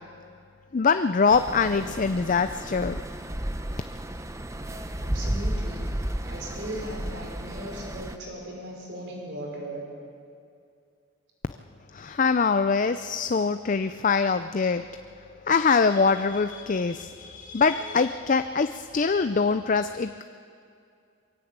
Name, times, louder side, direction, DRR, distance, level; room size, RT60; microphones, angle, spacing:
voice 1, 0.7-3.0 11.9-20.2, left 5 dB, 40° left, 10 dB, 0.4 m, -24 dB
sound 1, 1.3-8.2, right 1 dB, 15° right, 0.8 m, -33 dB
voice 2, 5.0-5.9 6.2-9.8, equal, 60° right, 0 dB, 5.4 m, -37 dB
23.0 x 16.0 x 8.8 m, 2.4 s
head